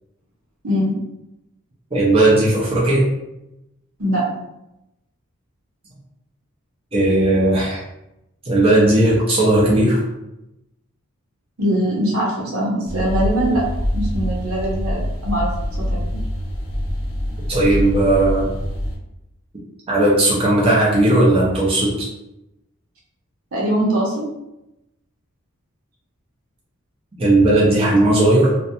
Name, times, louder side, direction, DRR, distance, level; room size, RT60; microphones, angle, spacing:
voice 1, 0.6-0.9 4.0-4.3 11.6-13.7 13.9-15.5 15.9-16.2 23.5-24.2, equal, 75° right, -4 dB, 0.8 m, -21 dB
voice 2, 1.9-3.1 6.9-7.8 8.4-10.0 17.5-18.5 19.9-22.1 27.2-28.6, right 1 dB, 25° right, -6 dB, 0.5 m, -16 dB
sound 1, 12.9-19.0, equal, 80° left, 0.6 m, -25 dB
2.5 x 2.1 x 2.7 m, 0.88 s
head